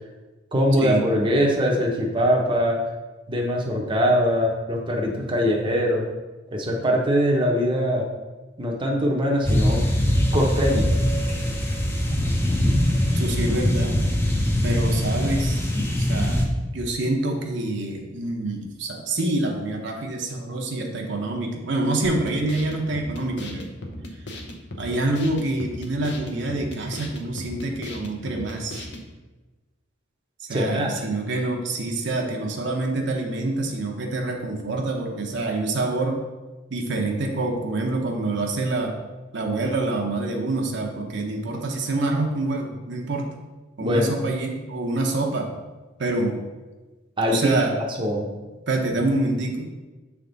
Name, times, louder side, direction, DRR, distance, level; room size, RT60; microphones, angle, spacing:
voice 1, 0.5-2.8 3.3-6.0 6.5-8.1 8.6-9.8 10.3-10.9 30.5-31.0 43.8-44.1 47.2-48.3, equal, 25° right, -1 dB, 0.7 m, -22 dB
sound 1, 9.4-16.4, left 1 dB, 10° left, 0.6 m, -22 dB
voice 2, 13.2-14.0 14.6-16.5 16.7-23.7 24.8-28.9 30.4-36.2 36.7-39.0 39.3-43.3 43.8-45.5 46.0-46.4 47.3-47.8 48.7-49.7, right 2 dB, 60° right, 1 dB, 0.8 m, -26 dB
sound 2, 22.0-29.1, left 1 dB, 60° left, 0.8 m, -37 dB
6.9 x 3.5 x 3.9 m, 1.2 s
head